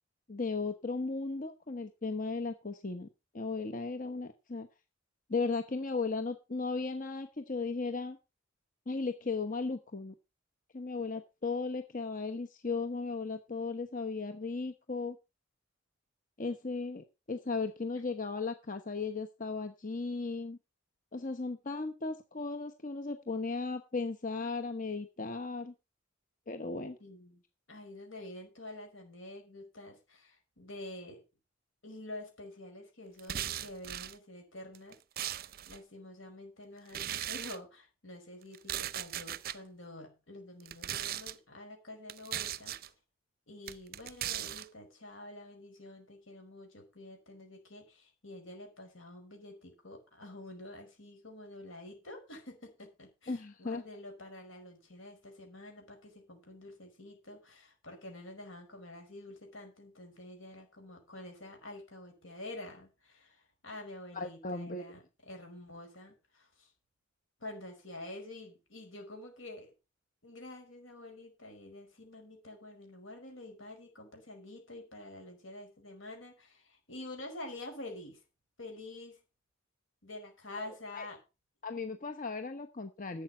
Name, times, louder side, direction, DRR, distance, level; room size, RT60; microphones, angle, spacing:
voice 1, 0.3-3.1 3.3-4.7 5.3-8.2 8.9-10.1 10.7-15.2 16.4-20.6 21.1-25.7 26.5-27.0 53.3-53.8 64.1-64.8 80.6-81.1 81.6-83.2, left 4 dB, 45° left, 7 dB, 1.0 m, -36 dB
voice 2, 27.0-27.4 27.7-31.2 31.8-35.0 35.3-42.8 43.5-66.7 67.4-69.7 70.2-78.2 78.6-79.2 80.0-81.2, left 1 dB, 80° left, 4 dB, 5.6 m, -48 dB
sound 1, 33.2-34.1 34.7-35.8 36.9-37.6 38.5-39.6 40.6-41.3 42.1-42.9 43.7-44.7, right 11 dB, 50° right, 0.5 m, -38 dB
12.0 x 8.1 x 5.7 m, 0.28 s
head